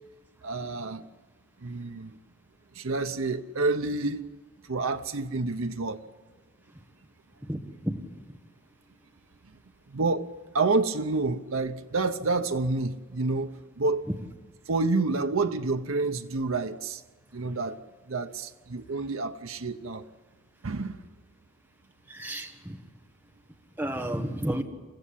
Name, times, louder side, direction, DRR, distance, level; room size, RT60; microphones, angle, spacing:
voice 1, 0.4-1.0 1.6-2.1 2.8-4.2 4.7-6.0 9.9-10.3 10.5-13.5 13.8-14.0 14.7-17.0 17.3-17.8 18.1-20.0 20.6-21.0, right 3 dB, 85° right, 0.8 m, -28 dB
voice 2, 7.4-8.1 14.1-14.2 22.1-22.8 23.8-24.6, right 1 dB, 10° right, 1.5 m, -32 dB
29.0 x 15.0 x 8.5 m
head